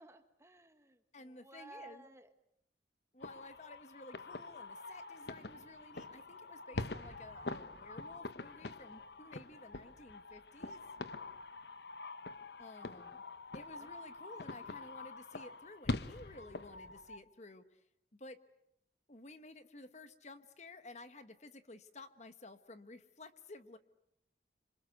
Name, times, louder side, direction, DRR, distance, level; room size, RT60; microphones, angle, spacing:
voice 1, 0.0-2.3 13.7-13.9, right 2 dB, 15° right, 9 dB, 1.4 m, -56 dB
voice 2, 1.1-2.0 3.1-10.8 12.6-13.2 13.5-17.8 18.1-18.4 19.1-23.8, left 2 dB, 40° left, 11 dB, 1.2 m, -54 dB
sound 1, 3.2-17.2, left 2 dB, 65° left, 1.1 m, -45 dB
27.0 x 26.5 x 8.0 m, 0.76 s
head